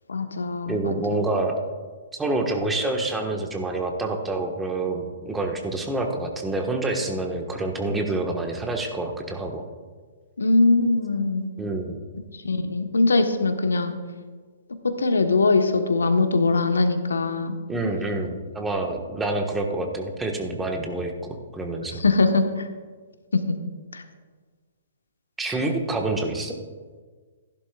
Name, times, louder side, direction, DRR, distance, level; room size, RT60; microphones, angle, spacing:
voice 1, 0.1-1.0 10.4-11.5 12.3-13.9 14.8-17.5 21.9-22.7 23.3-23.6 23.9-24.0, left 3 dB, 80° left, 7 dB, 1.2 m, -21 dB
voice 2, 0.7-1.6 2.1-9.6 11.6-12.0 17.7-22.0 25.4-26.5, right 2 dB, 10° right, 2 dB, 1.4 m, -27 dB
15.5 x 11.0 x 2.4 m, 1.5 s
figure-of-eight pair, 125°, 0 cm